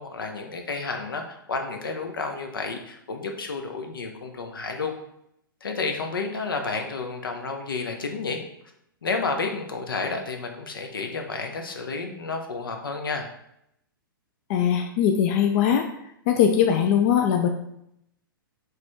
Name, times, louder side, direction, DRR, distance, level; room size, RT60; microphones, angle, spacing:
voice 1, 0.0-4.9 5.6-8.4 9.0-13.3, left 4 dB, 70° left, 4 dB, 0.8 m, -31 dB
voice 2, 14.5-15.8 16.3-17.5, left 8 dB, 40° left, 4 dB, 0.4 m, -20 dB
4.8 x 3.2 x 3.5 m, 0.77 s
figure-of-eight pair, 110°, 12 cm